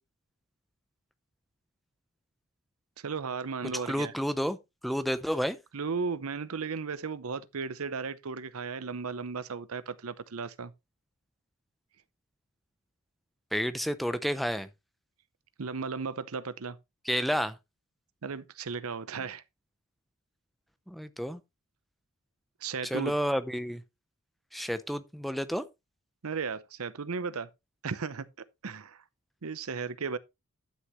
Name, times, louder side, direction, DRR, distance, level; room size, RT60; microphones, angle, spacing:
voice 1, 3.0-4.1 5.7-10.7 15.6-16.8 18.2-19.4 22.6-23.1 26.2-27.5 27.8-28.3 28.6-29.0 29.4-30.2, right 5 dB, 85° right, 0.7 m, -35 dB
voice 2, 3.9-4.6 4.8-5.6 13.5-14.7 17.1-17.5 20.9-21.4 22.9-23.8 24.5-25.6, equal, ahead, 0.5 m, -30 dB
11.5 x 6.3 x 3.1 m
head